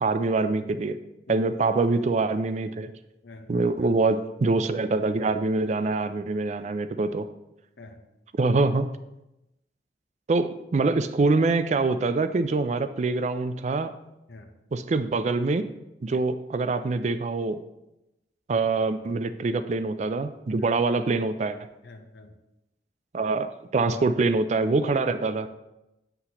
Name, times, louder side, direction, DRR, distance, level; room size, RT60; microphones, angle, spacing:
voice 1, 0.0-1.0 1.3-2.9 3.5-7.3 8.4-8.9 10.3-13.9 14.7-15.7 16.0-17.6 18.5-21.6 23.1-25.5, right 3 dB, 40° right, 11 dB, 0.3 m, -24 dB
voice 2, 3.2-4.0 7.8-8.0 14.3-14.5 20.6-20.7 21.8-22.4 23.8-24.1 24.7-25.1, left 3 dB, 80° left, 6 dB, 0.8 m, -44 dB
8.0 x 5.7 x 2.9 m, 0.93 s
head